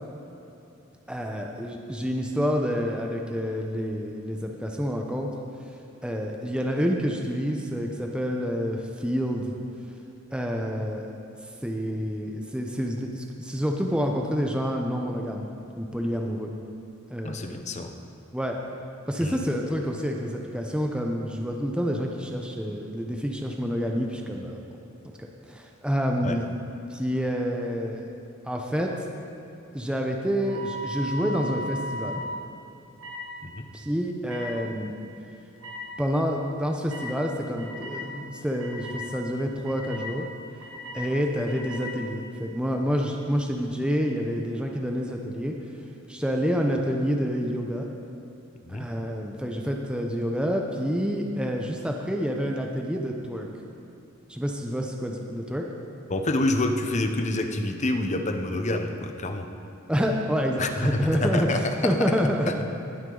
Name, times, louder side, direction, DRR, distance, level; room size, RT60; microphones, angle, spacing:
voice 1, 1.1-5.3 6.0-9.6 10.3-11.1 11.6-15.5 15.8-16.5 17.1-17.5 18.3-18.6 19.1-24.6 25.0-25.2 25.5-26.5 26.9-28.1 28.4-28.9 29.7-32.2 33.7-34.9 36.0-40.3 40.9-45.6 46.1-47.9 48.7-53.5 54.3-55.7 59.9-62.7, equal, 5° right, 1 dB, 0.7 m, -28 dB
voice 2, 17.2-17.9 19.2-19.4 26.2-26.4 33.4-33.7 48.7-48.9 56.1-59.5 60.6-61.9, left 2 dB, 35° left, 5 dB, 0.8 m, -27 dB
sound 1, 30.4-32.2 33.0-33.2 34.3-34.5 35.6-35.8 36.9-37.1 37.6-38.0 38.6-39.0 39.6-40.1 40.6-41.0 41.4-41.9, equal, 85° right, 2.4 m, -36 dB
19.0 x 8.0 x 3.9 m, 2.9 s
head